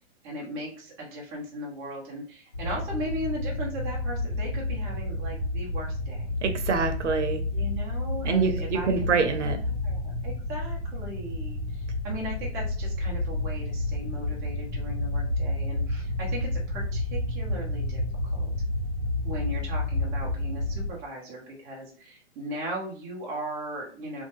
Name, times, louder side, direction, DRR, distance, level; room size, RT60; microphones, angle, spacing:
voice 1, 0.2-6.3 7.5-9.2 9.5-18.0 18.3-18.5 19.2-24.2, right 1 dB, 10° right, -3 dB, 0.3 m, -37 dB
sound 1, 2.5-20.9, left 2 dB, 80° left, 0.9 m, -30 dB
voice 2, 6.4-7.4 8.2-9.6, right 5 dB, 80° right, 6 dB, 0.7 m, -25 dB
2.7 x 2.1 x 3.0 m, 0.41 s
hypercardioid pair, 120°, 35 cm